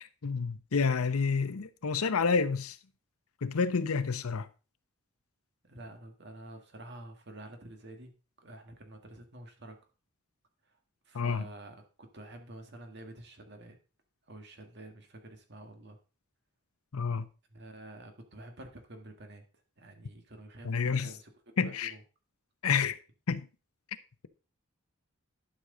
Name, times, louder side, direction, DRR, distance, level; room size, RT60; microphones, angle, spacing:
voice 1, 0.0-2.8 3.4-4.5 11.1-11.5 16.9-17.3 20.6-21.1 21.6-21.9 22.6-23.0 23.3-23.5, left 5 dB, 80° left, 0.7 m, -29 dB
voice 2, 5.6-8.1 8.4-9.8 10.7-10.8 11.0-13.8 14.3-16.0 17.5-19.4 19.8-21.3 21.6-22.0, right 1 dB, 50° right, 1.7 m, -48 dB
11.5 x 6.3 x 3.8 m
head